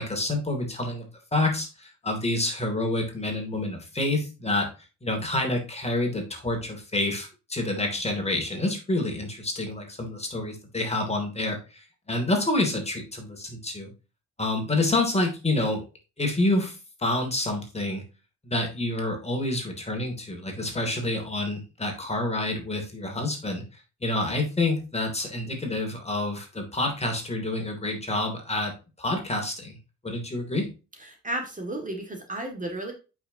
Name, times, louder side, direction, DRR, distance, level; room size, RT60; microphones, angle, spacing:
voice 1, 0.0-4.7 5.0-13.9 14.4-15.8 16.2-18.0 18.4-23.6 24.0-29.8 30.0-30.7, left 2 dB, 20° left, 2 dB, 2.9 m, -28 dB
voice 2, 31.0-32.9, right 1 dB, 25° right, 3 dB, 2.3 m, -33 dB
8.4 x 6.0 x 2.9 m, 0.30 s
cardioid pair, 90°, 30 cm